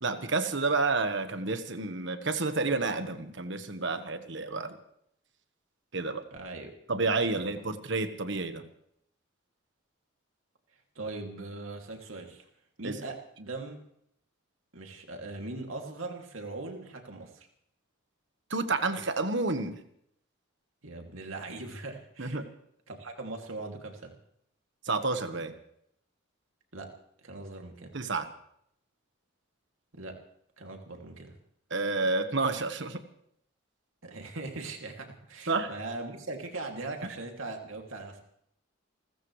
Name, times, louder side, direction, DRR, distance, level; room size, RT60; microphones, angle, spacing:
voice 1, 0.0-4.8 5.9-6.2 6.9-8.7 12.8-12.9 18.5-19.8 22.2-22.4 24.9-25.5 27.9-28.3 31.7-33.0 35.5-35.7, right 3 dB, 60° right, 9 dB, 1.4 m, -30 dB
voice 2, 6.3-6.7 7.4-7.6 10.9-12.5 12.8-13.8 14.7-17.5 20.8-22.4 22.9-24.1 26.7-26.9 27.2-27.9 29.9-30.2 30.6-31.3 34.0-38.2, right 2 dB, 75° right, 3 dB, 2.7 m, -40 dB
29.0 x 14.5 x 3.3 m, 0.71 s
head